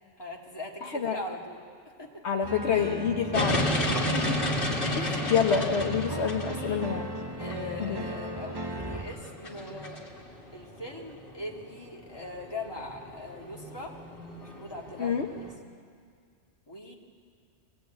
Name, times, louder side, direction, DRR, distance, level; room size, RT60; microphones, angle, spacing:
voice 1, 0.2-1.6 2.0-2.2 6.6-7.0 7.4-10.0 10.5-14.0 14.4-15.5 16.7-16.9, left 1 dB, 20° left, -2 dB, 2.5 m, -40 dB
voice 2, 0.8-1.2 2.2-3.7 4.1-4.4 4.9-7.1 7.8-8.0 15.0-15.3, left 7 dB, 65° left, 3 dB, 1.3 m, -27 dB
sound 1, 2.4-9.0, right 2 dB, 20° right, 1.0 m, -37 dB
sound 2, 3.3-15.5, left 1 dB, 45° left, 2.6 m, -33 dB
23.0 x 17.5 x 9.2 m, 2.1 s
omnidirectional pair, 1.2 m